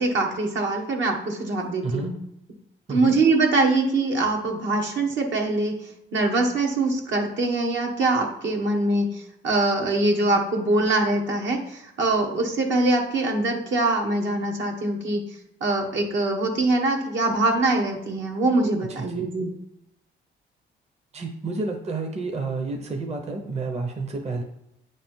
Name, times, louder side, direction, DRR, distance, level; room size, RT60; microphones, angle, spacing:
voice 1, 0.0-2.1 2.9-5.7 6.1-15.2 15.6-19.5, right 2 dB, 70° right, 1 dB, 1.3 m, -23 dB
voice 2, 1.8-2.1 2.9-3.2 18.9-19.3 21.1-24.4, right 3 dB, 35° right, 3 dB, 0.8 m, -30 dB
8.7 x 3.3 x 4.4 m, 0.83 s
cardioid pair, 90°, 20 cm